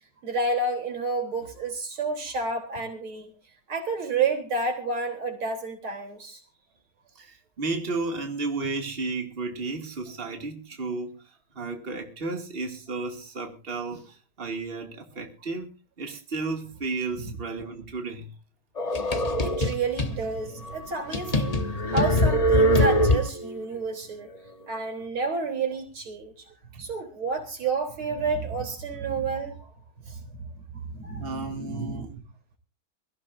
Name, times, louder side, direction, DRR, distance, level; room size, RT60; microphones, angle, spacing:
voice 1, 0.2-3.3 3.7-6.4 17.2-17.3 19.2-24.3 24.7-26.3 26.8-29.7 30.1-30.5 30.8-32.1, right 3 dB, 90° right, 4.6 m, -30 dB
voice 2, 7.2-15.7 16.0-18.3 26.7-26.8 31.2-32.1, right 3 dB, 25° right, 2.6 m, -33 dB
sound 1, 18.8-20.1 20.6-20.7 21.1-23.6, equal, 25° left, 0.8 m, -22 dB
23.5 x 15.0 x 2.7 m
omnidirectional pair, 2.2 m